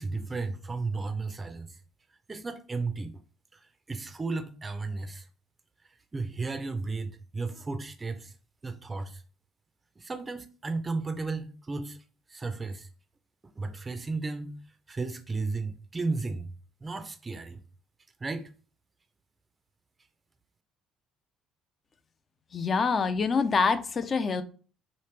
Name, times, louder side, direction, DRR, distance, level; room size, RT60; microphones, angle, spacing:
voice 1, 0.0-1.8 2.3-3.2 3.5-5.3 6.1-8.3 8.6-9.2 10.0-12.0 12.3-12.9 13.6-14.6 14.9-16.5 16.8-17.6 18.2-18.5, right 3 dB, 25° right, 0.4 m, -34 dB
voice 2, 22.5-24.4, left 5 dB, 40° left, 0.4 m, -26 dB
3.1 x 2.5 x 3.2 m
supercardioid pair, 85°, 0 cm